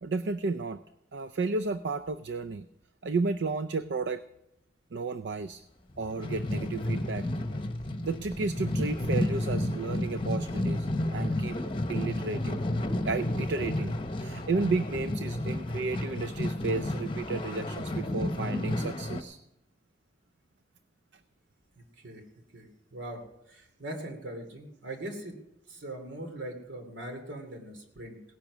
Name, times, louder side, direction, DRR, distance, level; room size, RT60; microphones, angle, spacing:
voice 1, 0.0-0.8 1.1-2.7 3.0-4.2 4.9-5.6 6.0-7.3 8.0-11.6 11.9-12.6 13.0-19.4, right 3 dB, 65° right, 12 dB, 0.5 m, -32 dB
sound 1, 5.9-19.2, left 1 dB, 30° left, 0.9 m, -31 dB
voice 2, 21.7-22.2 22.5-23.2 23.5-25.4 25.7-28.2, right 1 dB, 80° right, 5 dB, 2.6 m, -41 dB
17.0 x 10.5 x 6.1 m, 0.83 s
head